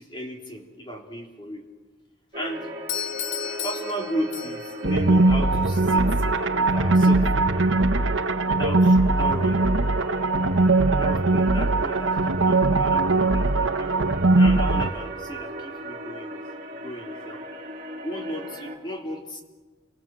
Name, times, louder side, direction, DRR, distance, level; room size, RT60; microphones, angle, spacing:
voice 1, 0.0-1.6 2.3-2.7 3.6-6.1 6.6-7.3 8.4-9.7 11.0-13.5 13.7-16.4 16.8-17.4 18.0-19.4, equal, 25° left, 0 dB, 3.5 m, -34 dB
sound 1, 2.3-18.8, right 1 dB, 40° right, 3.2 m, -37 dB
Doorbell, 2.9-4.9, left 9 dB, 90° left, 1.2 m, -33 dB
sound 2, 4.8-14.9, right 2 dB, 90° right, 1.2 m, -20 dB
30.0 x 25.0 x 7.7 m, 1.3 s
head